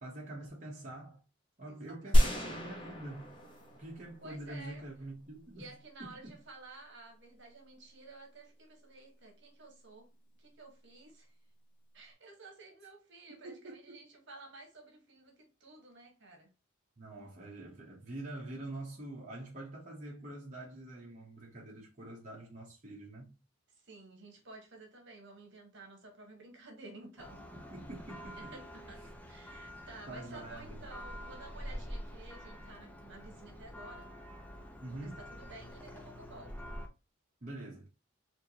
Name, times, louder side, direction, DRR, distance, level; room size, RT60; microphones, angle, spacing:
voice 1, 0.0-1.2 1.6-3.4 3.7-5.7 6.0-6.3 13.3-14.0 17.0-23.3 27.5-28.5 30.1-30.9 34.8-35.2 37.4-37.9, right 1 dB, 40° right, 0.9 m, -45 dB
voice 2, 2.0-2.3 4.2-4.9 5.6-10.1 10.4-11.3 11.9-16.5 23.7-27.4 28.3-34.1 34.9-36.6, right 2 dB, 60° right, 1.3 m, -53 dB
sound 1, 2.1-4.5, equal, 25° left, 1.1 m, -29 dB
Church bell, 27.2-36.9, equal, 10° left, 0.5 m, -47 dB
4.4 x 2.6 x 2.9 m
head